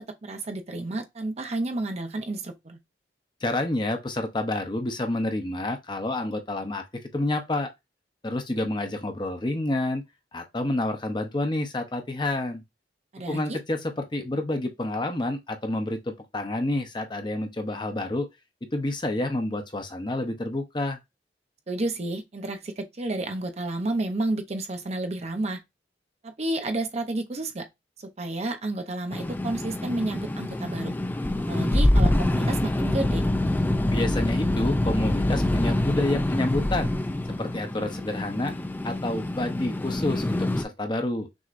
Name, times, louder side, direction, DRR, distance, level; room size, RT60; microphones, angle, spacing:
voice 1, 0.0-2.8 13.1-13.6 21.7-25.6 26.2-27.7 28.0-30.9 31.5-33.3, right 2 dB, 35° right, 0.7 m, -31 dB
voice 2, 3.4-6.8 7.1-7.7 8.2-10.0 10.3-12.6 13.3-18.3 18.7-21.0 33.9-36.9 37.4-38.5 38.8-41.3, left 2 dB, 25° left, 0.8 m, -29 dB
sound 1, 29.1-40.6, left 1 dB, 10° left, 0.3 m, -25 dB
6.2 x 2.8 x 2.5 m
head